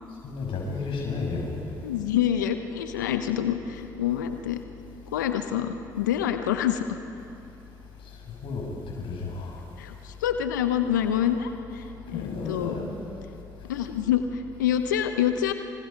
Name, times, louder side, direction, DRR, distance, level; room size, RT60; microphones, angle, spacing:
voice 1, 0.2-1.6 8.4-9.6 12.1-12.9, left 4 dB, 60° left, 0 dB, 6.2 m, -32 dB
voice 2, 1.8-4.6 5.1-7.0 9.8-12.7 13.7-15.5, left 10 dB, 90° left, 8 dB, 1.0 m, -27 dB
28.0 x 28.0 x 5.3 m, 2.8 s
hypercardioid pair, 50°, 10 cm